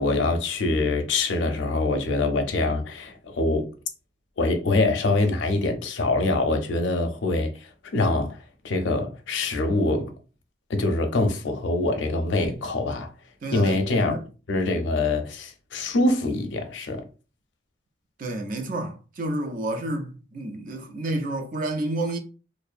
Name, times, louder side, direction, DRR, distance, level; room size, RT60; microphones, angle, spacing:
voice 1, 0.0-3.7 4.4-8.4 8.6-10.1 10.7-13.1 13.5-14.1 14.5-17.0, left 2 dB, 80° left, 0.5 m, -24 dB
voice 2, 13.4-14.2 18.2-22.2, right 2 dB, 45° right, 0.4 m, -30 dB
2.5 x 2.0 x 2.4 m
head